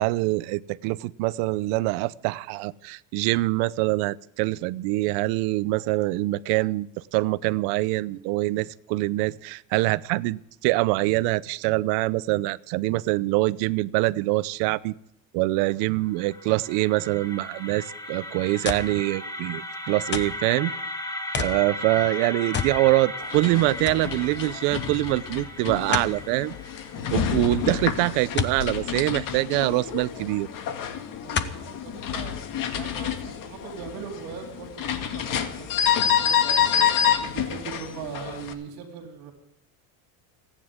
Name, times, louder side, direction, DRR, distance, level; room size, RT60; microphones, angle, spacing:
voice 1, 0.0-6.9 7.1-14.9 15.3-20.7 21.4-26.5 27.1-30.5, right 20 dB, 80° right, 18 dB, 0.8 m, -24 dB
sound 1, 15.9-27.9, left 1 dB, 10° left, 1.9 m, -36 dB
sound 2, 18.6-19.0 20.1-20.4 21.3-21.6 22.5-22.8 23.2-23.3 23.9-24.1 25.9-26.2 28.4-28.6 30.1-30.2 31.3-31.7 32.4-32.5, left 7 dB, 25° left, 1.1 m, -29 dB
voice 2, 21.3-21.9 26.9-27.2 31.2-32.4 32.7-35.7 36.1-39.3, right 7 dB, 60° right, 2 dB, 3.8 m, -40 dB
sound 3, 23.2-38.5, left 9 dB, 50° left, 2.1 m, -28 dB
30.0 x 10.0 x 3.7 m, 0.78 s
cardioid pair, 135°, 42 cm